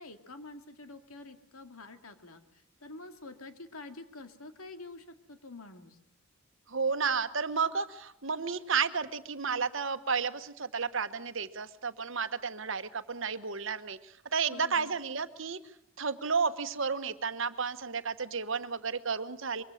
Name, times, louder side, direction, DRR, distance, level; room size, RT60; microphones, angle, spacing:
voice 1, 0.0-6.0 14.5-14.9, left 2 dB, 80° left, 7 dB, 2.3 m, -47 dB
voice 2, 6.7-15.6 16.0-19.6, right 5 dB, 60° right, 11 dB, 1.2 m, -32 dB
24.5 x 23.0 x 6.5 m, 0.79 s
head